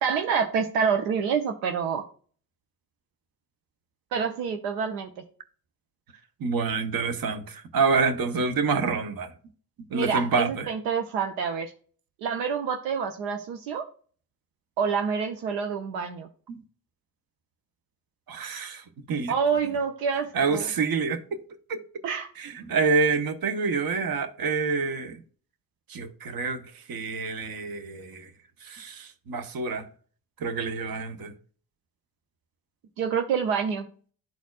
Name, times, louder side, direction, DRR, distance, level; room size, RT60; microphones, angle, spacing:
voice 1, 0.0-2.0 4.1-5.1 9.9-11.7 12.2-13.8 14.8-16.3 19.3-20.7 22.0-22.3 33.0-33.8, right 6 dB, 75° right, 0.8 m, -27 dB
voice 2, 6.4-9.3 9.9-10.7 16.5-16.6 18.3-19.3 20.3-21.4 21.7-21.8 22.4-25.2 25.9-28.3 28.6-29.9 30.4-31.3, right 4 dB, 45° right, 1.1 m, -27 dB
12.0 x 4.1 x 2.3 m
hypercardioid pair, 45°, 48 cm